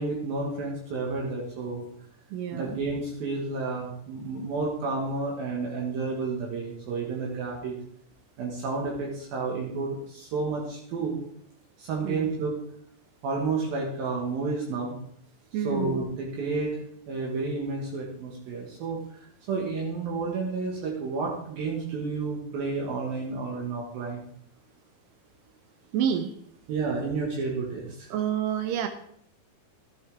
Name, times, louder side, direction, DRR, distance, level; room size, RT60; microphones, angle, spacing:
voice 1, 0.0-1.8 2.5-7.7 8.4-11.2 11.8-12.5 13.2-14.9 15.6-16.8 17.1-19.0 19.5-24.2 26.7-28.1, right 4 dB, 65° right, -2 dB, 3.1 m, -31 dB
voice 2, 2.3-2.8 12.0-12.3 15.5-16.0 25.9-26.4 28.1-28.9, right 9 dB, 85° right, 8 dB, 1.9 m, -28 dB
12.5 x 10.0 x 3.5 m, 0.66 s
omnidirectional pair, 4.7 m